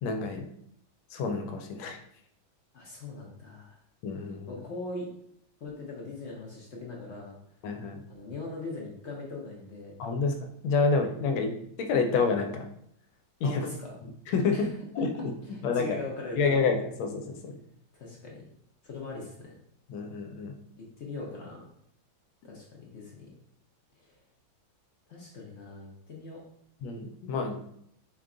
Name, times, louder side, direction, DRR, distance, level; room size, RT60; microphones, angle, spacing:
voice 1, 0.0-0.5 1.1-2.0 4.0-4.6 7.6-8.0 10.0-11.5 11.8-12.7 13.4-13.7 14.3-14.7 15.0-15.3 15.6-16.0 16.4-17.6 19.9-20.5 26.8-27.6, left 4 dB, 85° left, 4 dB, 1.4 m, -28 dB
voice 2, 2.7-3.8 4.5-5.1 5.6-7.4 8.1-9.9 13.4-13.9 14.5-14.7 15.5-16.6 18.0-18.4 18.8-19.5 20.8-21.7 22.4-23.3 25.1-26.4, left 3 dB, 60° left, -2 dB, 0.7 m, -40 dB
5.0 x 2.3 x 3.7 m, 0.70 s
omnidirectional pair, 2.2 m